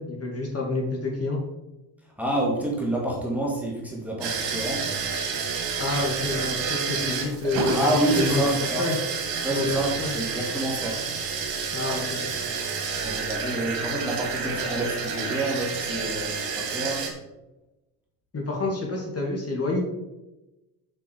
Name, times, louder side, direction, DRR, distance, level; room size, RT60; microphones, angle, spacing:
voice 1, 0.0-1.4 5.8-8.4 8.8-9.0 9.5-10.1 11.7-12.2 18.3-19.8, left 2 dB, 30° left, -1 dB, 2.5 m, -28 dB
voice 2, 2.0-4.9 7.7-8.9 9.4-11.1 13.0-17.1, right 1 dB, 5° right, -3 dB, 2.1 m, -28 dB
sound 1, 4.2-17.1, right 5 dB, 60° right, 1.9 m, -29 dB
5.9 x 5.8 x 4.8 m, 1.0 s
hypercardioid pair, 65°, 48 cm